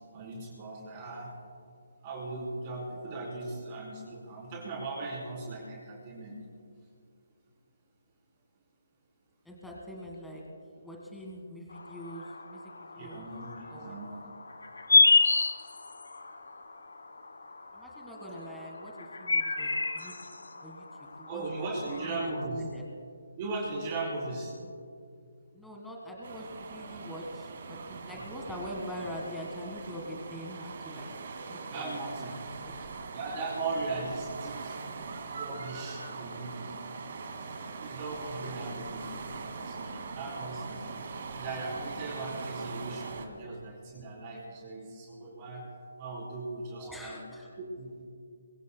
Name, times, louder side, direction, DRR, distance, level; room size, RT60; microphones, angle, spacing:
voice 1, 0.1-1.3 2.0-6.4 13.0-14.2 21.2-22.6 23.4-24.5 31.7-32.3 33.1-34.8 35.3-36.7 37.8-39.1 39.4-40.8 41.3-45.6 46.0-47.2 47.6-48.0, right 3 dB, 25° right, -4 dB, 3.3 m, -38 dB
voice 2, 9.4-10.4 10.8-12.2 12.5-13.3 13.7-13.9 17.7-20.1 20.6-22.8 25.5-31.1 31.5-32.0 32.3-32.7 37.9-38.8 46.8-47.5, equal, ahead, -2 dB, 1.6 m, -43 dB
sound 1, 11.7-22.5, left 3 dB, 85° left, 1.3 m, -30 dB
sound 2, 26.2-43.3, right 4 dB, 50° right, 2.1 m, -41 dB
22.5 x 21.5 x 2.2 m, 2.3 s
hypercardioid pair, 160°, 0 cm